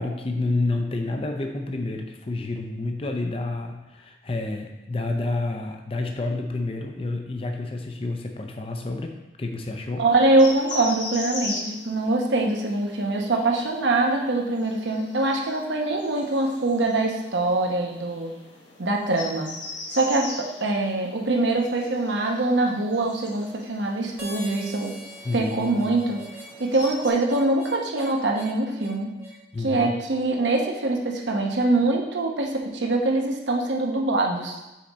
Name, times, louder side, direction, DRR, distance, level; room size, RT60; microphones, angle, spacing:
voice 1, 0.0-10.0 25.2-25.9 29.5-30.0, left 2 dB, 30° left, 3 dB, 0.5 m, -29 dB
voice 2, 10.0-18.3 18.8-19.5 19.9-24.9 25.3-26.2 26.6-29.1 29.6-34.6, right 2 dB, 75° right, 1 dB, 0.9 m, -23 dB
sound 1, 10.1-27.1, left 2 dB, 75° left, 1.3 m, -40 dB
Harmonica, 24.2-29.4, right 1 dB, 15° right, 0.9 m, -43 dB
5.7 x 4.8 x 4.1 m, 1.0 s
head